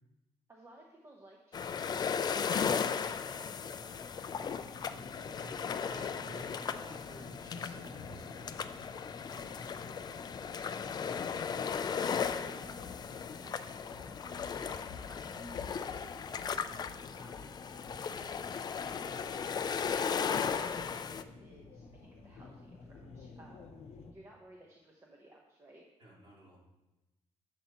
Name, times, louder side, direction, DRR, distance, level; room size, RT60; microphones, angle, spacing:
voice 1, 0.5-5.4 5.8-6.0 10.9-11.4 12.0-16.8 17.2-17.6 18.2-25.9, right 1 dB, 20° right, -1 dB, 0.9 m, -58 dB
sound 1, 1.5-21.2, left 6 dB, 35° left, 0.4 m, -36 dB
sound 2, 4.3-24.1, left 4 dB, 60° left, 0.9 m, -50 dB
voice 2, 5.3-8.8 9.1-10.2 10.7-10.9 26.0-26.6, right 1 dB, 40° right, -5 dB, 3.2 m, -53 dB
10.5 x 6.9 x 2.9 m, 1.0 s
cardioid pair, 140°, 12 cm